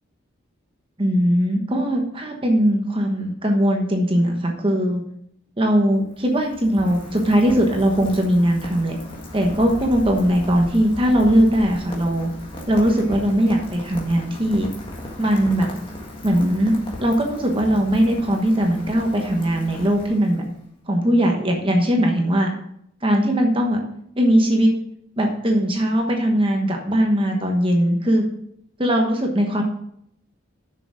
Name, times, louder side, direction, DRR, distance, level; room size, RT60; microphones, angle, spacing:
voice 1, 1.0-5.0 5.6-9.0 9.3-12.3 12.7-14.7 15.2-15.7 16.2-16.7 17.0-20.4 20.9-22.5 23.0-23.8 24.2-24.7 25.2-28.3 28.8-29.6, equal, 25° right, 2 dB, 1.2 m, -19 dB
Rain, 5.8-20.6, left 1 dB, 25° left, 1.7 m, -36 dB
7.4 x 6.5 x 6.3 m, 0.71 s
head